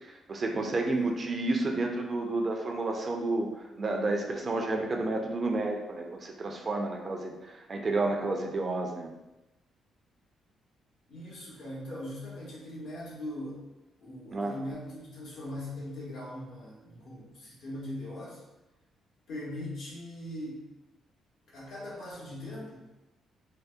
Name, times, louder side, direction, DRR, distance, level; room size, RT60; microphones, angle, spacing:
voice 1, 0.0-3.5 3.8-9.1 14.3-14.5, right 2 dB, 40° right, 2 dB, 0.4 m, -30 dB
voice 2, 11.1-13.7 14.0-18.4 19.3-20.7 21.5-22.8, left 1 dB, 80° left, -6 dB, 1.0 m, -40 dB
2.7 x 2.0 x 2.2 m, 1.0 s
cardioid pair, 90°, 0 cm